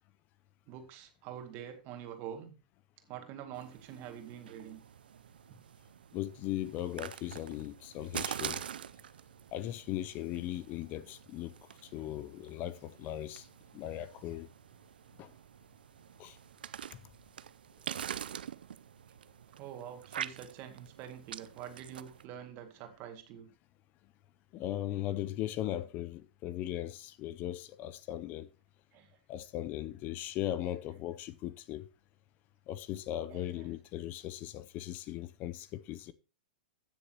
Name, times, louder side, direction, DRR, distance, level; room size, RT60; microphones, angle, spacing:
voice 1, 0.7-2.5 3.1-4.8 19.5-23.5 28.9-29.2 30.6-30.7 33.3-33.7, right 9 dB, 40° right, 2.1 m, -46 dB
sound 1, 3.5-22.2, right 9 dB, 80° right, 0.5 m, -45 dB
voice 2, 6.1-8.6 9.5-11.5 11.8-13.5 13.7-14.5 15.2-15.3 16.2-16.4 16.9-17.0 24.5-28.5 29.3-31.9 32.7-36.1, left 13 dB, 35° left, 0.6 m, -38 dB
15.5 x 6.7 x 2.9 m
hypercardioid pair, 120°, 5 cm